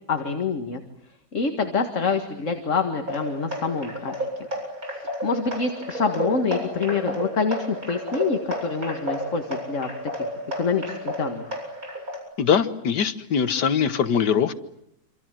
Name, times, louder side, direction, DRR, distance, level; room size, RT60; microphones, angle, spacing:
voice 1, 0.1-0.8 1.3-4.3 4.9-9.9 10.6-11.5, left 5 dB, 50° left, 6 dB, 2.2 m, -26 dB
sound 1, 3.1-12.2, equal, 55° right, 8.2 m, -32 dB
voice 2, 12.4-14.5, left 7 dB, 85° left, 12 dB, 1.9 m, -22 dB
27.5 x 26.5 x 7.6 m, 0.80 s
omnidirectional pair, 1.8 m